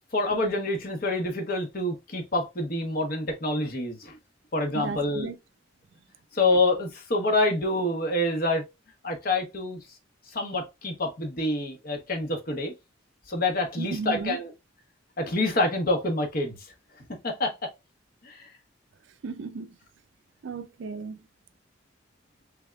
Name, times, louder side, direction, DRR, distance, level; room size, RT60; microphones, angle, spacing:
voice 1, 0.1-4.1 4.5-5.3 6.3-8.6 9.0-9.8 10.3-12.7 13.3-14.5 15.2-16.6 17.2-17.7 18.2-18.5, left 2 dB, 50° left, 0.9 m, -27 dB
voice 2, 4.7-5.4 13.8-14.4 19.2-19.8 20.4-21.3, right 4 dB, 65° right, 0.4 m, -34 dB
3.5 x 3.3 x 2.3 m
head